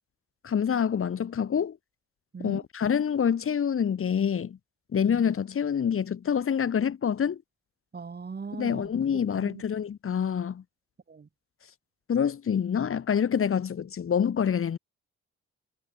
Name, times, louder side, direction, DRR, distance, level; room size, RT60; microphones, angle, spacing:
voice 1, 0.4-1.8 2.4-4.6 4.9-7.4 8.6-10.6 12.1-14.8, left 8 dB, 45° left, 1.8 m, -26 dB
voice 2, 2.3-2.6 5.0-5.2 7.9-9.6 11.1-11.3, right 5 dB, 35° right, 3.1 m, -40 dB
cardioid pair, 90°, 30 cm